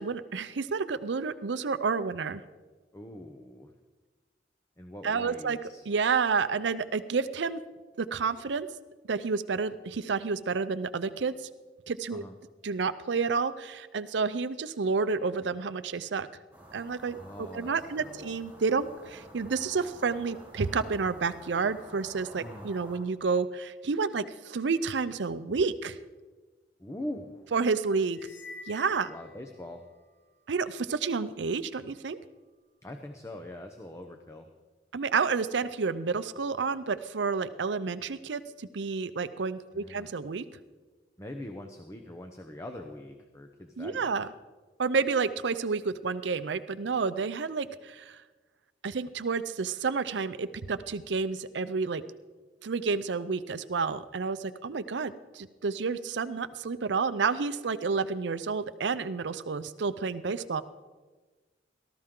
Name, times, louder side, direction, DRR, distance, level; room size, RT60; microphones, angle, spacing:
voice 1, 0.0-2.4 5.0-5.6 5.9-7.6 8.0-8.7 9.1-11.3 11.9-12.2 12.6-16.3 16.7-26.0 27.5-28.2 28.7-29.1 30.5-32.2 34.9-40.4 43.8-44.3 44.8-48.2 48.8-52.0 52.6-60.6, right 5 dB, 80° right, 13 dB, 0.5 m, -30 dB
voice 2, 2.9-3.7 4.8-5.8 12.1-12.4 17.2-18.4 22.4-22.7 26.8-27.4 29.0-29.9 32.8-34.5 39.7-40.1 41.2-44.2, left 1 dB, 15° left, 4 dB, 0.8 m, -43 dB
sound 1, 16.5-23.0, right 1 dB, 10° right, 3.3 m, -50 dB
sound 2, 28.1-30.0, left 3 dB, 80° left, 1.1 m, -48 dB
18.0 x 13.5 x 3.8 m, 1.3 s
head